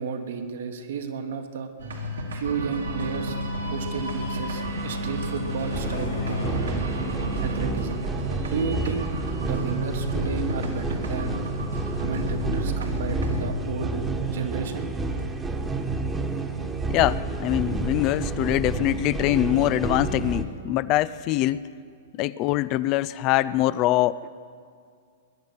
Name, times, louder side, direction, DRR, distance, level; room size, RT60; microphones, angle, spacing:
voice 1, 0.0-1.7 2.3-3.4 3.7-6.8 7.4-8.0 8.5-11.4 12.0-14.1 14.3-14.9, right 6 dB, 65° right, 6 dB, 1.4 m, -32 dB
sound 1, 1.8-18.9, left 1 dB, 80° right, 2.2 m, -34 dB
Bus, 2.7-7.7, left 1 dB, 85° left, 3.0 m, -34 dB
sound 2, 5.7-20.4, right 3 dB, 15° right, 1.3 m, -30 dB
voice 2, 16.9-21.6 22.2-24.3, left 15 dB, 40° left, 17 dB, 0.4 m, -23 dB
21.0 x 10.5 x 5.8 m, 2.2 s
hypercardioid pair, 105°, 0 cm